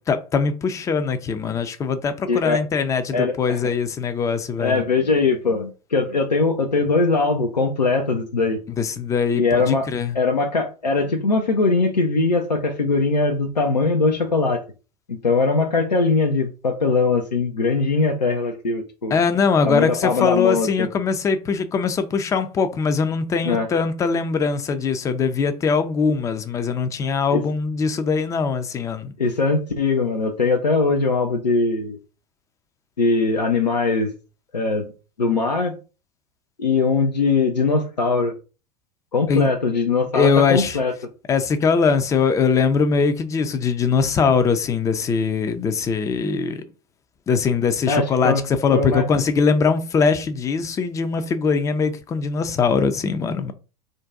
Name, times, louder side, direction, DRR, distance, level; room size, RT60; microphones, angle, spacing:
voice 1, 0.0-4.8 8.8-10.2 19.1-29.1 39.3-39.5 40.1-40.8 41.3-46.6 47.3-53.5, left 5 dB, 15° left, 0.3 m, -21 dB
voice 2, 2.3-2.6 3.1-3.6 4.6-8.6 9.3-9.9 10.1-14.6 15.1-19.2 19.7-20.9 23.4-23.7 27.3-27.4 29.2-32.0 33.0-34.1 34.5-34.9 35.2-35.7 36.6-38.3 39.1-40.9 47.9-48.4 48.7-49.1, left 3 dB, 90° left, 0.4 m, -21 dB
2.6 x 2.2 x 3.5 m
figure-of-eight pair, 85°, 21 cm